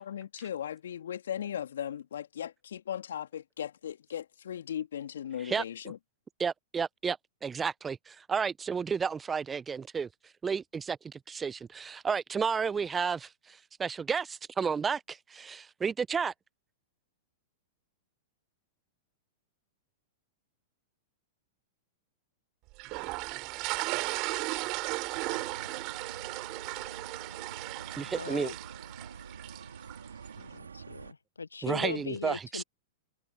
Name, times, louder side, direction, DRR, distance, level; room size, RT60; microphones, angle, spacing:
voice 1, 0.0-6.0, left 9 dB, 70° left, 3.1 m, -37 dB
voice 2, 6.4-10.1 10.4-16.3 28.0-28.5 31.6-32.6, right 6 dB, 15° right, 0.6 m, -32 dB
sound 1, 22.8-30.1, right 25 dB, 45° right, 2.8 m, -36 dB
sound 2, 25.1-31.1, right 6 dB, 80° right, 2.9 m, -47 dB
voice 3, 28.0-28.5 30.4-32.6, left 4 dB, 85° left, 0.6 m, -39 dB
figure-of-eight pair, 100°, 0 cm